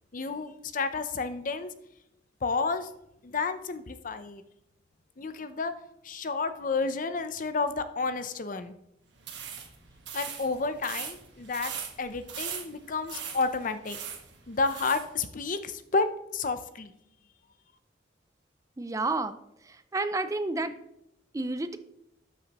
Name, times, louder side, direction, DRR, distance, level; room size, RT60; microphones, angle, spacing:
voice 1, 0.1-1.7 2.4-2.9 3.2-4.4 5.2-5.7 6.0-8.7 10.1-11.7 12.0-14.0 14.5-16.1 16.3-16.9, left 4 dB, 45° left, 10 dB, 0.6 m, -31 dB
sound 1, 9.2-15.1, right 7 dB, 65° right, 1.4 m, -40 dB
voice 2, 18.8-19.4 19.7-20.8 21.3-21.8, right 2 dB, 15° right, 10 dB, 0.4 m, -30 dB
13.0 x 6.4 x 3.0 m, 0.79 s
head